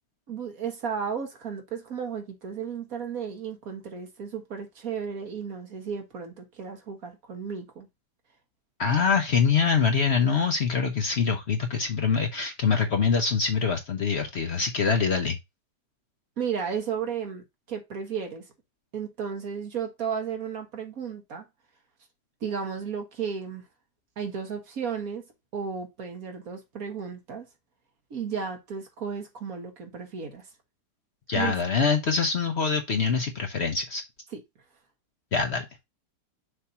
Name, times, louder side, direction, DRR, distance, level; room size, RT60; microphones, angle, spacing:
voice 1, 0.3-7.9 16.4-18.4 18.9-21.5 22.4-23.6 24.2-25.3 25.5-27.5 28.1-30.4 31.4-31.5 34.3-34.4, right 6 dB, 60° right, 1.8 m, -34 dB
voice 2, 8.8-15.4 31.3-34.0 35.3-35.7, left 5 dB, 50° left, 0.9 m, -24 dB
6.6 x 2.8 x 5.6 m
omnidirectional pair, 1.7 m